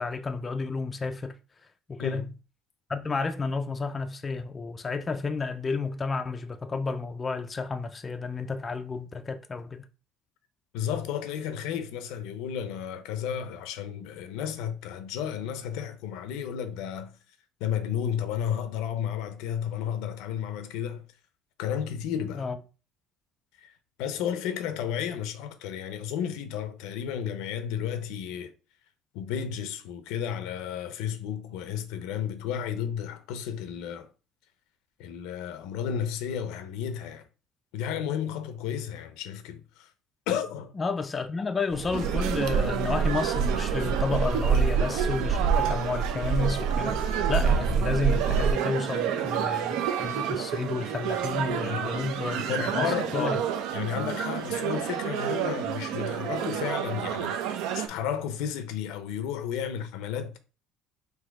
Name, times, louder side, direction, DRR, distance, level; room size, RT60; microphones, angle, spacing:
voice 1, 0.0-1.4 1.9-2.3 2.9-9.8 22.4-22.6 40.8-52.9 53.1-53.4, left 4 dB, 20° left, 0.3 m, -31 dB
voice 2, 10.7-17.1 17.6-21.0 21.6-22.5 23.6-28.5 29.1-34.1 35.0-37.3 37.7-39.9 40.3-40.7 51.6-53.4 53.7-60.4, left 8 dB, 85° left, 0.6 m, -33 dB
sound 1, 41.7-48.5, right 6 dB, 45° right, 1.0 m, -27 dB
sound 2, 41.9-57.9, right 9 dB, 80° right, 0.6 m, -30 dB
4.1 x 2.7 x 4.6 m
cardioid pair, 150°, 0 cm